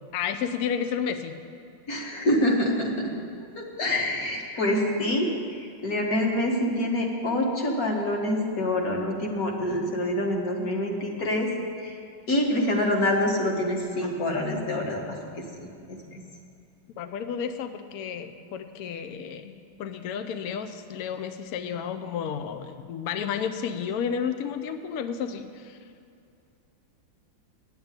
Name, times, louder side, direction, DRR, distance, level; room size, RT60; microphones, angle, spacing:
voice 1, 0.1-1.4 17.0-25.8, left 7 dB, 85° left, 8 dB, 0.8 m, -32 dB
voice 2, 1.9-3.1 3.6-5.3 5.6-11.5 11.8-12.0 12.3-15.0 15.4-16.2, left 1 dB, 45° left, 0 dB, 1.8 m, -26 dB
9.1 x 7.9 x 9.0 m, 2.5 s
omnidirectional pair, 2.3 m